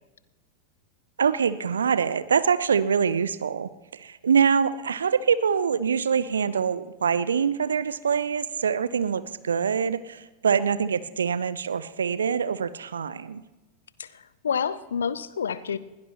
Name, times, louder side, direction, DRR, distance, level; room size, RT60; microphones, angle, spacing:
voice 1, 1.2-13.4, right 6 dB, 70° right, 15 dB, 0.7 m, -24 dB
voice 2, 14.0-15.8, left 7 dB, 70° left, 17 dB, 0.7 m, -29 dB
21.0 x 17.0 x 3.0 m, 1.1 s
figure-of-eight pair, 90°, 0 cm